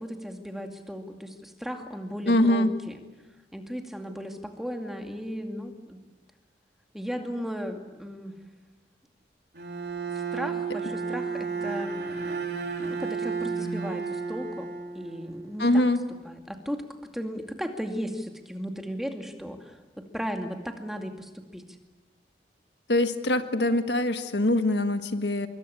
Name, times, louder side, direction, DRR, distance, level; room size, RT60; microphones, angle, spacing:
voice 1, 0.0-3.0 3.5-6.0 6.9-8.4 10.3-12.0 12.9-14.7 14.9-15.8 16.2-16.8 17.1-21.6, equal, ahead, 4 dB, 2.3 m, -36 dB
voice 2, 2.3-2.7 15.6-16.0 22.9-25.5, left 1 dB, 80° left, 9 dB, 1.6 m, -23 dB
Bowed string instrument, 9.5-15.5, right 5 dB, 65° right, 3.7 m, -32 dB
25.5 x 23.0 x 8.6 m, 1.2 s
head